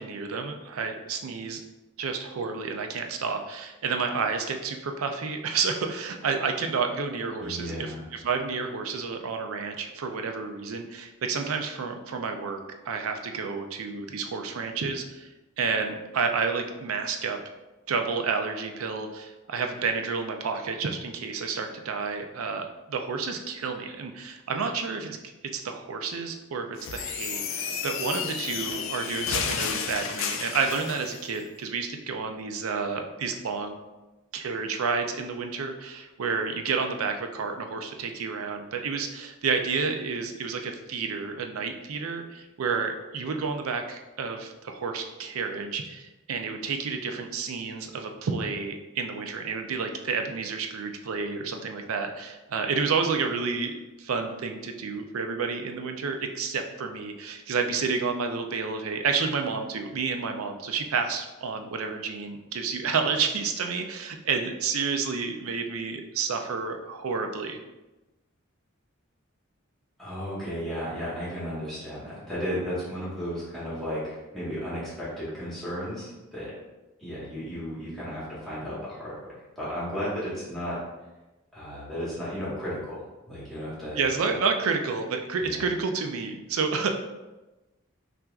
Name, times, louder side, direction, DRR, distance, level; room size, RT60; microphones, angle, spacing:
voice 1, 0.0-1.6 2.0-12.6 12.8-15.3 15.6-17.4 17.9-33.8 34.3-67.6 84.0-86.9, right 5 dB, 85° right, 5 dB, 0.5 m, -30 dB
voice 2, 7.4-8.0 70.0-76.5 77.0-80.8 81.5-84.4 85.4-85.6, equal, ahead, -10 dB, 1.3 m, -34 dB
sound 1, 26.8-31.2, left 6 dB, 65° left, 0.4 m, -32 dB
5.7 x 2.5 x 2.4 m, 1.1 s
head